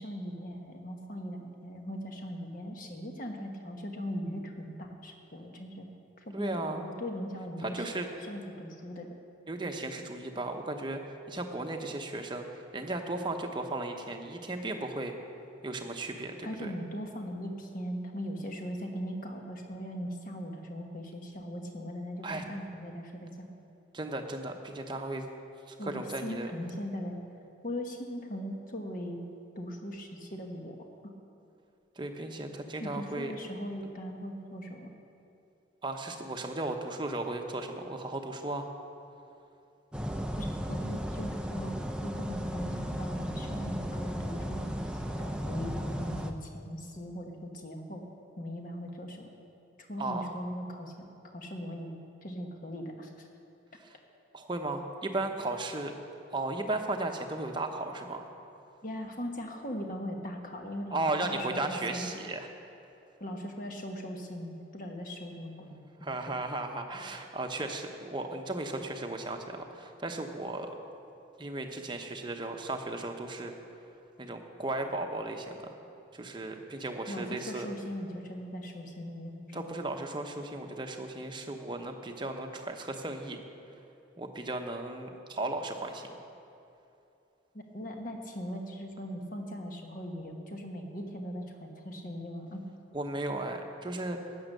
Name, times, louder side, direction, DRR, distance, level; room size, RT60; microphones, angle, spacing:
voice 1, 0.0-5.9 6.2-7.9 8.2-9.1 16.4-23.5 25.8-27.2 27.6-29.2 29.5-30.8 31.0-31.1 32.8-34.9 40.4-48.1 48.4-49.3 49.9-50.9 51.2-53.3 58.8-62.1 63.2-65.8 77.1-79.7 87.5-92.6, equal, 40° left, 3 dB, 1.2 m, -39 dB
voice 2, 6.3-6.8 7.6-8.1 9.5-11.0 11.3-15.1 15.6-16.7 22.2-22.4 23.9-25.3 25.7-26.5 32.0-33.3 35.8-38.7 50.0-50.3 53.8-53.9 54.3-56.0 56.3-58.3 60.9-62.5 66.0-70.8 71.4-73.5 74.2-75.7 76.1-77.7 79.5-83.4 84.2-86.1 92.9-94.2, right 2 dB, 25° right, 4 dB, 0.8 m, -35 dB
sound 1, 39.9-46.3, equal, 5° right, 0.5 m, -35 dB
12.5 x 9.1 x 6.6 m, 2.8 s
head